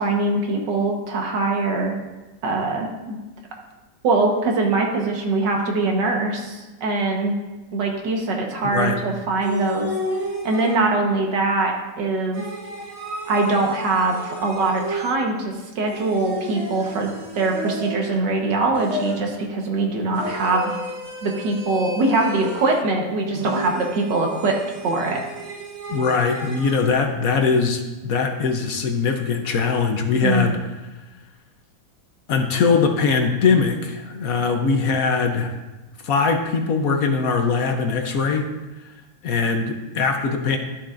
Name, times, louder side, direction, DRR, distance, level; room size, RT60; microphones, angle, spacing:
voice 1, 0.0-1.9 2.4-3.2 4.0-7.3 7.7-9.9 10.4-12.4 13.3-20.7 21.2-24.6 24.8-25.2 30.2-30.5, right 3 dB, 85° right, 1 dB, 1.9 m, -22 dB
voice 2, 8.6-9.0 25.9-30.6 32.3-35.5 36.0-38.5 38.8-38.9 39.2-40.6, left 5 dB, 65° left, 4 dB, 1.1 m, -21 dB
sound 1, 9.4-11.1 12.3-15.4 15.9-18.2 18.7-19.5 20.1-22.9 23.3-26.9, right 1 dB, 45° right, 1.2 m, -32 dB
12.0 x 7.2 x 2.5 m, 1.1 s
omnidirectional pair, 1.9 m